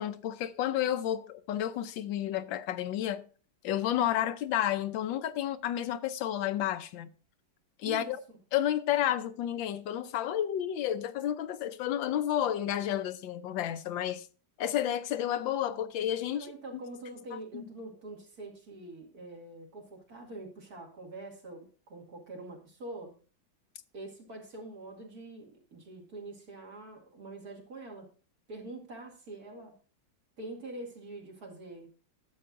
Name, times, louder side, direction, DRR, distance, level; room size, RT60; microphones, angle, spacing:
voice 1, 0.0-3.2 3.6-7.1 7.8-8.2 8.5-14.3 14.6-16.5 17.5-17.6, left 11 dB, 85° left, 1.4 m, -31 dB
voice 2, 16.3-23.2 23.9-28.1 28.5-29.7 30.4-31.9, right 2 dB, 55° right, 2.5 m, -45 dB
12.0 x 7.6 x 2.5 m
omnidirectional pair, 2.0 m